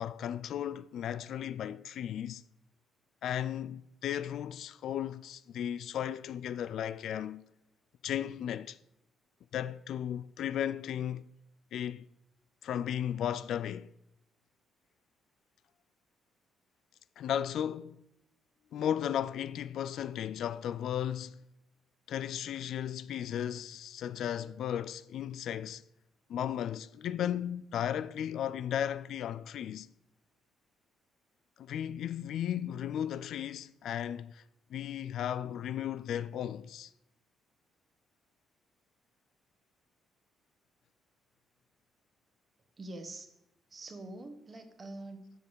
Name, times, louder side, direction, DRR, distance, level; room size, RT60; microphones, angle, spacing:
voice 1, 0.0-2.4 3.2-7.4 8.0-8.8 9.5-11.2 11.7-12.0 12.6-13.9 17.2-18.0 18.7-21.4 22.1-25.8 26.3-29.9 31.6-34.4 34.7-36.9, left 10 dB, 75° left, 0.3 m, -35 dB
voice 2, 42.8-43.3 43.7-45.3, right 2 dB, 35° right, 1.2 m, -45 dB
6.5 x 5.2 x 6.8 m
cardioid pair, 90°, 0 cm